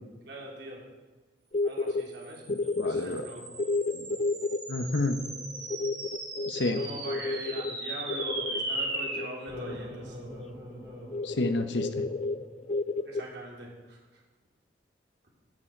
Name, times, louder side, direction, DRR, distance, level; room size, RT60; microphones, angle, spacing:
voice 1, 0.3-0.8 1.6-2.4 2.8-3.4 6.8-10.2 13.0-14.2, right 1 dB, 65° right, -3 dB, 3.6 m, -42 dB
sound 1, 1.5-2.0 2.5-10.0 10.3-10.4 10.7-10.8 11.1-13.2, left 3 dB, 35° left, 0.4 m, -31 dB
sound 2, 2.0-12.7, right 2 dB, 20° right, 3.3 m, -39 dB
voice 2, 2.5-3.2 3.9-4.1 4.7-5.2 6.5-6.8 11.2-11.9, left 2 dB, 75° left, 8 dB, 0.9 m, -30 dB
10.5 x 7.2 x 9.0 m, 1.3 s
head